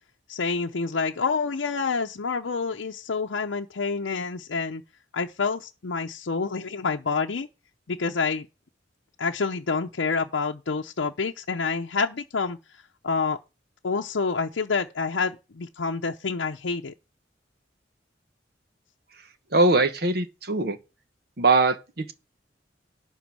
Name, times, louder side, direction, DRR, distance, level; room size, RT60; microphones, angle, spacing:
voice 1, 0.3-4.8 5.1-7.5 7.9-8.5 9.2-13.4 13.8-16.9, left 4 dB, 80° left, 0.7 m, -28 dB
voice 2, 19.5-20.8 21.4-22.1, right 3 dB, 55° right, 1.1 m, -21 dB
11.5 x 3.8 x 7.3 m
head